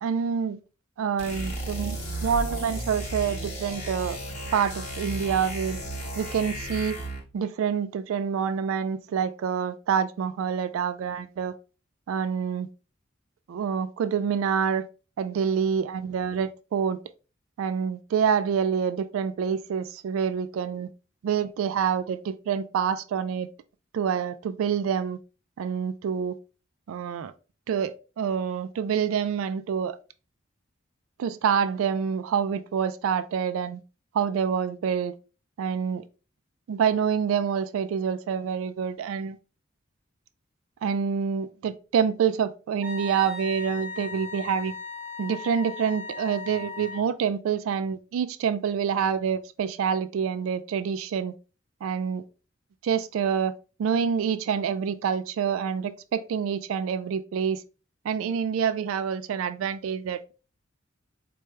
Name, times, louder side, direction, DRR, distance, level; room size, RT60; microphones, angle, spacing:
voice 1, 0.0-0.6 1.0-4.2 4.5-5.8 6.2-7.0 7.3-11.5 12.1-12.7 13.5-14.9 15.2-17.0 17.6-20.9 21.2-23.5 23.9-25.2 25.6-26.4 26.9-27.3 27.7-30.0 31.2-33.8 34.1-35.1 35.6-36.0 36.7-39.4 40.8-44.7 45.2-51.3 51.8-52.2 52.8-53.5 53.8-57.6 58.0-60.3, right 7 dB, 80° right, 0.3 m, -27 dB
sound 1, 1.2-7.3, right 1 dB, 35° left, 1.1 m, -34 dB
Wind instrument woodwind instrument, 42.8-47.1, left 3 dB, 10° right, 0.6 m, -38 dB
4.5 x 2.2 x 3.0 m
head